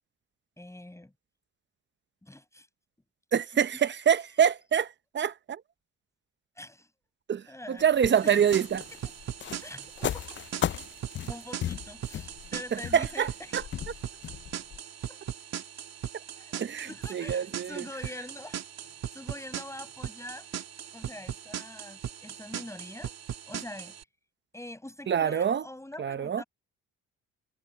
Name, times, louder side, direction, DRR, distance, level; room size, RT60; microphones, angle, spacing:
voice 1, 0.6-1.1 2.2-2.7 3.7-3.8 6.6-6.9 7.5-7.9 8.2-8.5 8.9-9.1 9.6-10.4 11.3-13.6 14.2-14.3 15.1-15.2 16.4-18.6 19.1-20.5 20.9-23.1 23.5-24.0 24.5-26.4, left 1 dB, 10° left, 6.7 m, -44 dB
voice 2, 3.3-5.6 7.3-8.8 12.9-13.3 13.5-13.6 16.6-17.8 25.1-25.6 26.0-26.4, right 8 dB, 40° right, 0.8 m, -26 dB
sound 1, 7.8-14.8, left 10 dB, 40° left, 0.4 m, -36 dB
sound 2, 8.0-24.0, right 9 dB, 60° right, 2.5 m, -39 dB
cardioid pair, 90°, 30 cm